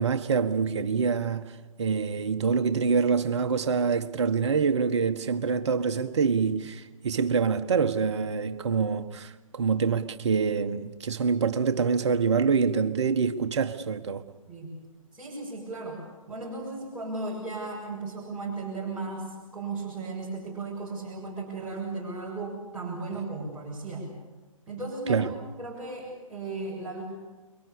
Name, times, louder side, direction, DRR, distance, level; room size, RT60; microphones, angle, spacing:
voice 1, 0.0-1.5 1.8-14.2 25.1-25.3, right 5 dB, 55° right, 1.6 m, -26 dB
voice 2, 15.1-24.1 24.7-25.3 25.6-27.0, right 3 dB, 5° right, 7.0 m, -35 dB
29.5 x 23.5 x 7.0 m
figure-of-eight pair, 130°, 18 cm